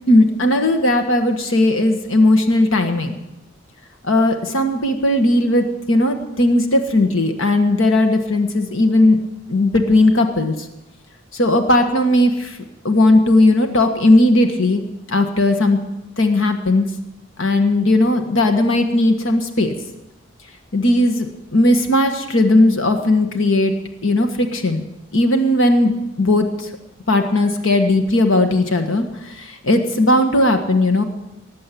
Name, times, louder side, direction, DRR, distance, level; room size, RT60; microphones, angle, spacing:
voice 1, 0.1-3.2 4.0-9.2 9.5-10.5 11.3-12.6 12.8-15.8 16.2-16.9 17.4-19.7 20.7-23.7 24.0-24.8 25.1-26.7 27.1-31.0, left 1 dB, 80° left, 5 dB, 1.5 m, -17 dB
19.0 x 7.7 x 9.1 m, 0.92 s
head